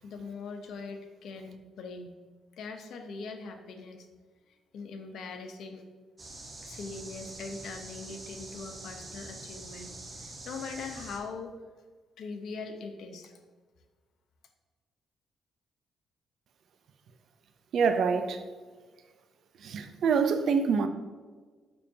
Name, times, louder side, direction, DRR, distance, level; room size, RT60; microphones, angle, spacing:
voice 1, 0.0-2.2 2.6-4.1 4.5-5.8 6.6-11.5 12.2-13.3, left 4 dB, 70° left, 5 dB, 0.9 m, -41 dB
sound 1, 6.2-11.2, right 2 dB, 30° right, 1.4 m, -45 dB
voice 2, 17.7-18.4 19.6-20.9, right 5 dB, 65° right, 8 dB, 0.7 m, -25 dB
7.1 x 6.4 x 2.8 m, 1.4 s
cardioid pair, 90°, 0 cm